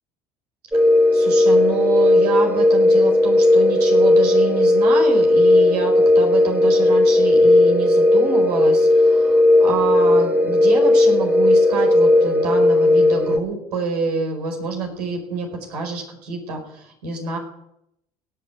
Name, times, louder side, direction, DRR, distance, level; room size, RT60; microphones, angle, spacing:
sound 1, 0.7-13.4, left 1 dB, 10° right, 2.2 m, -15 dB
voice 1, 1.1-17.4, right 4 dB, 85° right, 2 dB, 5.0 m, -27 dB
17.5 x 10.5 x 8.2 m, 0.79 s
hypercardioid pair, 65°, 19 cm